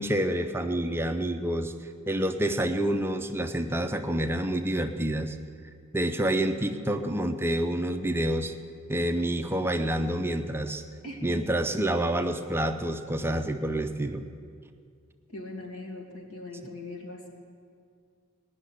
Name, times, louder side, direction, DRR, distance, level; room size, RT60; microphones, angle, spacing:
voice 1, 0.0-1.7 2.1-5.4 5.9-8.5 8.9-10.8 11.2-14.3, right 1 dB, 10° right, 7 dB, 0.5 m, -28 dB
voice 2, 11.0-11.5 15.3-17.3, left 2 dB, 80° left, 0 dB, 2.6 m, -40 dB
18.5 x 6.5 x 9.9 m, 2.3 s
head